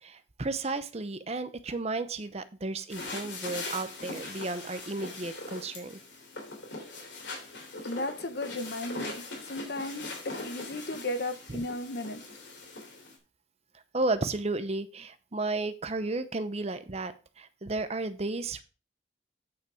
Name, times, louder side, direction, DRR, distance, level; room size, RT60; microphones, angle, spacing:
voice 1, 0.0-6.0 11.5-11.6 13.9-18.6, right 2 dB, 35° right, 0.7 m, -33 dB
sound 1, 2.9-13.2, left 2 dB, 80° left, 3.1 m, -41 dB
voice 2, 7.8-12.2, left 1 dB, 55° left, 1.1 m, -35 dB
9.2 x 5.8 x 4.8 m
head